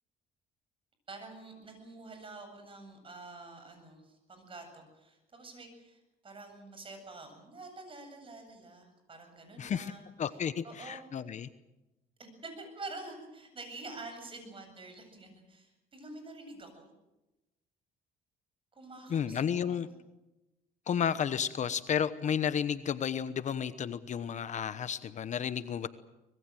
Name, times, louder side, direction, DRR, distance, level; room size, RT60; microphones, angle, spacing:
voice 1, 1.1-11.3 12.2-16.9 18.7-19.9 20.9-21.1, right 2 dB, 30° right, 6 dB, 8.0 m, -48 dB
voice 2, 9.6-9.9 10.2-11.5 19.1-19.9 20.9-25.9, left 8 dB, 45° left, 13 dB, 1.1 m, -32 dB
25.0 x 21.0 x 7.7 m, 0.99 s
cardioid pair, 110°, 17 cm